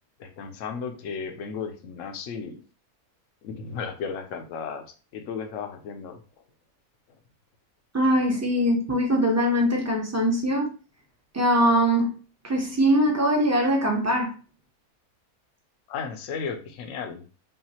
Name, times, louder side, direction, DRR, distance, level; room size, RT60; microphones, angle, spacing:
voice 1, 0.2-2.6 3.4-4.8 5.1-6.2 15.9-17.2, left 6 dB, 65° left, 1.0 m, -34 dB
voice 2, 7.9-10.7 11.3-12.1 12.4-14.3, equal, 15° right, 0.8 m, -22 dB
5.5 x 2.5 x 2.9 m
omnidirectional pair, 1.6 m